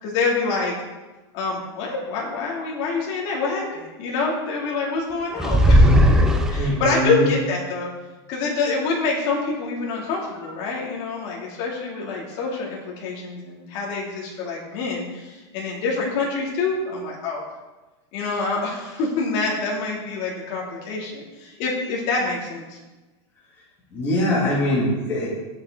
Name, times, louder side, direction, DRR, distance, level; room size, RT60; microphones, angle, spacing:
voice 1, 0.0-0.7 1.3-7.9 8.3-17.4 18.1-22.8, left 4 dB, 40° left, -3 dB, 2.8 m, -26 dB
sound 1, 5.4-7.0, equal, 5° right, 0.5 m, -16 dB
voice 2, 6.6-7.3 23.9-25.3, left 1 dB, 15° left, -8 dB, 2.5 m, -22 dB
13.0 x 8.4 x 3.9 m, 1.2 s
supercardioid pair, 175°, 15 cm